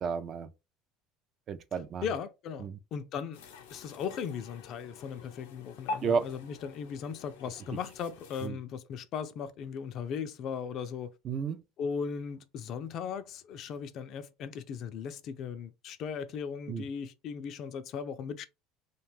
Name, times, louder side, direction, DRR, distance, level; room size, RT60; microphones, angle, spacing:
voice 1, 0.0-0.5 1.5-2.0 2.6-2.8 6.0-6.3 8.4-8.5 11.2-11.6 16.7-16.8, right 6 dB, 40° right, 0.4 m, -32 dB
voice 2, 2.0-3.4 3.7-11.1 11.8-18.4, left 7 dB, 50° left, 0.4 m, -37 dB
sound 1, 3.3-8.5, left 3 dB, 90° left, 0.6 m, -45 dB
2.4 x 2.2 x 3.2 m
supercardioid pair, 110°, 0 cm